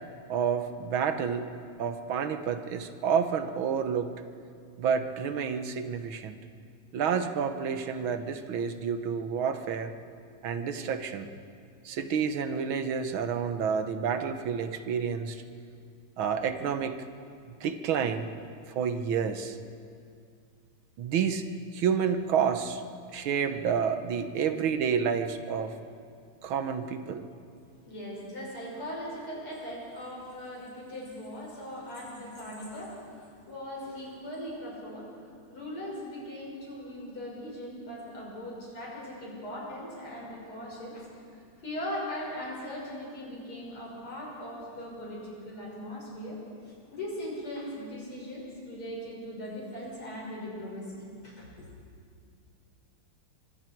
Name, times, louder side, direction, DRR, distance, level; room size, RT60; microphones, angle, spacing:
voice 1, 0.3-1.5 1.8-4.1 4.8-6.4 6.9-9.9 10.4-11.3 11.9-15.4 16.2-17.0 17.6-18.3 18.7-19.6 21.0-21.5 21.7-22.8 23.1-25.7 26.4-27.3, right 7 dB, 70° right, 8 dB, 1.8 m, -29 dB
voice 2, 27.8-35.1 35.5-51.7, equal, 80° left, -4 dB, 7.0 m, -39 dB
25.0 x 24.5 x 4.6 m, 2.3 s
omnidirectional pair, 2.3 m